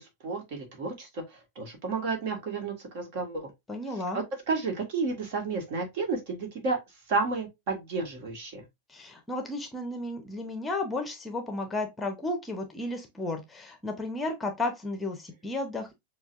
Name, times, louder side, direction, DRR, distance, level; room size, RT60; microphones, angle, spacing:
voice 1, 0.0-3.5 3.9-6.8 7.1-8.6, right 4 dB, 50° right, 1.6 m, -32 dB
voice 2, 3.7-4.2 8.9-15.9, left 2 dB, 10° left, 0.8 m, -33 dB
7.0 x 2.4 x 2.5 m
figure-of-eight pair, 90°, 0 cm